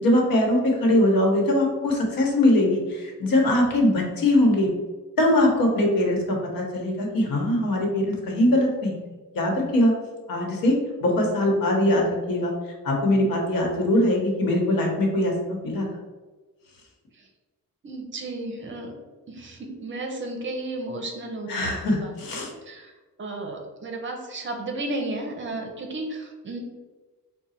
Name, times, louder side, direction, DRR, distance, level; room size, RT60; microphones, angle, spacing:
voice 1, 0.0-4.7 5.2-6.2 6.5-9.0 9.3-9.9 10.3-12.5 12.8-15.9 21.5-22.5, left 1 dB, 85° left, 0 dB, 1.1 m, -22 dB
voice 2, 17.8-18.9 19.3-22.1 22.6-22.9 23.2-26.6, right 2 dB, 35° right, 2 dB, 0.6 m, -33 dB
4.9 x 2.2 x 4.2 m, 1.3 s
wide cardioid pair, 175°, 33 cm